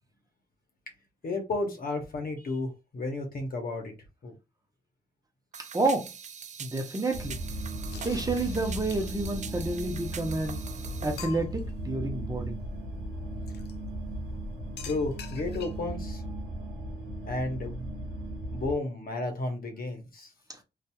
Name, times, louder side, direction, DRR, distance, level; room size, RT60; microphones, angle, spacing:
voice 1, 1.2-3.9 4.2-4.3 14.8-16.2 17.3-17.9 18.5-20.3, left 2 dB, 55° left, 1.0 m, -32 dB
sound 1, 5.5-11.2, right 7 dB, 45° right, 0.4 m, -43 dB
voice 2, 5.7-6.1 6.6-7.4 8.0-10.6 11.0-12.6, right 2 dB, 20° right, 0.8 m, -29 dB
sound 2, 7.1-18.7, right 1 dB, 85° right, 1.0 m, -37 dB
sound 3, 7.9-9.4 10.3-10.4 10.7-10.8 11.2-11.7 13.5-13.7 14.8-15.9, left 7 dB, 75° left, 0.4 m, -45 dB
2.7 x 2.4 x 2.3 m
supercardioid pair, 45°, 18 cm